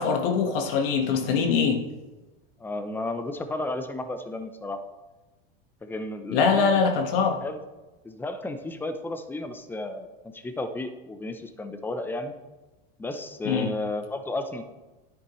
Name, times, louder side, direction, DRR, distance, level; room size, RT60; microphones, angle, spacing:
voice 1, 0.0-1.8 6.3-7.4 13.4-13.7, left 5 dB, 70° left, 4 dB, 1.5 m, -23 dB
voice 2, 2.6-4.8 5.8-6.9 7.4-7.6 8.0-10.1 10.3-12.3 13.0-14.6, left 2 dB, 5° left, 9 dB, 0.6 m, -33 dB
10.0 x 7.8 x 3.1 m, 1.2 s
supercardioid pair, 130°, 29 cm